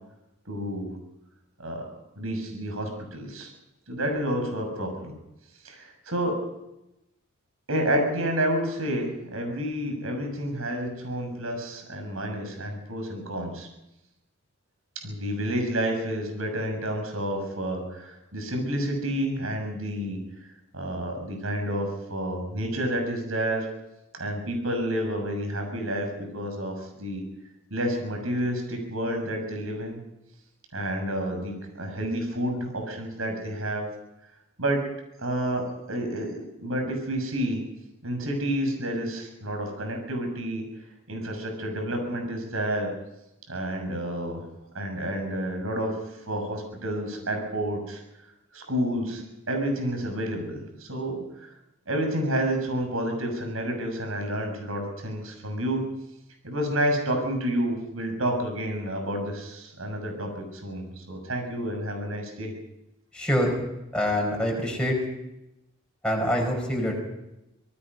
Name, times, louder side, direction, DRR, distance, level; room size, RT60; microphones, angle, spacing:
voice 1, 0.5-0.9 1.6-1.8 2.2-3.5 3.9-5.1 5.6-6.4 7.7-13.7 15.0-20.2 20.7-23.7 24.2-27.2 27.7-30.0 30.7-33.9 34.6-34.8 35.2-37.6 38.0-40.6 41.1-42.9 43.5-44.4 44.7-45.9 46.3-48.0 48.5-51.2 51.9-55.8 56.4-62.5, right 1 dB, 90° right, 4 dB, 7.0 m, -29 dB
voice 2, 63.1-63.6 63.9-65.0 66.0-67.0, equal, 5° left, -1 dB, 5.4 m, -25 dB
26.5 x 19.0 x 5.6 m, 0.89 s
head